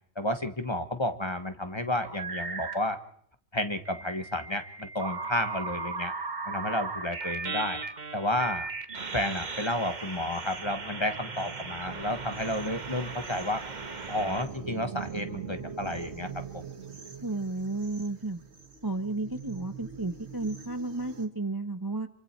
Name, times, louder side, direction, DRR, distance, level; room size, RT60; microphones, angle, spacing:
voice 1, 0.1-3.0 3.5-6.1 6.5-7.8 8.1-8.7 9.1-13.6 14.1-16.6, left 1 dB, 25° left, 8 dB, 1.4 m, -31 dB
sound 1, 2.0-3.0 3.8-14.4, right 4 dB, 45° right, 1.4 m, -37 dB
sound 2, 8.9-21.3, right 6 dB, 80° right, 2.1 m, -44 dB
voice 2, 17.2-18.4 18.8-22.1, right 2 dB, 20° right, 9 dB, 1.0 m, -32 dB
27.0 x 24.5 x 4.5 m, 0.62 s
omnidirectional pair, 1.1 m